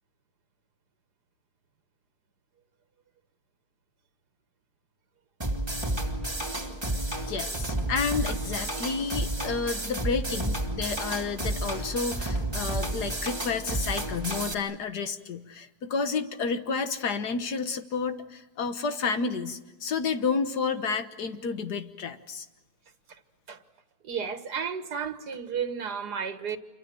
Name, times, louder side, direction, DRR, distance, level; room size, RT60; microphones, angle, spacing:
sound 1, 5.4-14.5, right 1 dB, 15° right, 2.6 m, -31 dB
voice 1, 7.3-22.5, left 5 dB, 85° left, 1.8 m, -30 dB
voice 2, 24.0-26.6, right 7 dB, 85° right, 2.0 m, -32 dB
28.0 x 24.0 x 7.8 m
omnidirectional pair, 1.7 m